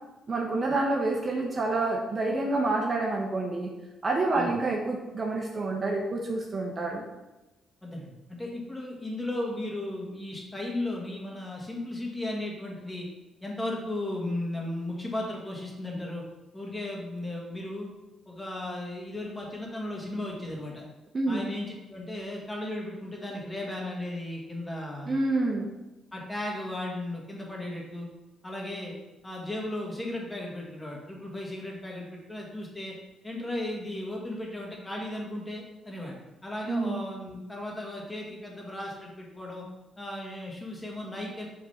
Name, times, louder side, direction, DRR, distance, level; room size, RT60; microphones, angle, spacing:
voice 1, 0.3-3.7 4.0-7.0 21.1-21.5 25.1-25.7 36.7-37.0, right 2 dB, 35° right, 0 dB, 1.1 m, -28 dB
voice 2, 7.8-13.1 13.4-16.2 16.5-17.9 18.3-20.8 21.3-25.2 26.1-28.1 28.4-28.9 29.2-32.9 33.2-36.2 36.4-39.6 40.0-41.5, left 1 dB, 15° left, -2 dB, 2.0 m, -35 dB
6.6 x 3.9 x 5.7 m, 1.0 s
cardioid pair, 90°, 0 cm